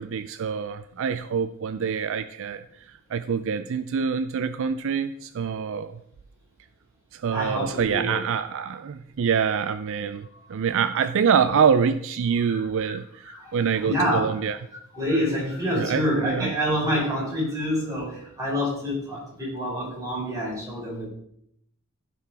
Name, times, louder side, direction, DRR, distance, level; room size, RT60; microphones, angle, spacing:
voice 1, 0.0-2.6 3.1-6.0 7.1-13.2 13.5-14.6 15.8-16.5, right 6 dB, 60° right, 11 dB, 0.4 m, -25 dB
voice 2, 7.3-8.1 10.3-10.8 12.5-12.9 13.2-14.3 14.9-21.1, equal, 15° right, -6 dB, 4.6 m, -27 dB
15.5 x 6.0 x 3.5 m, 0.72 s
head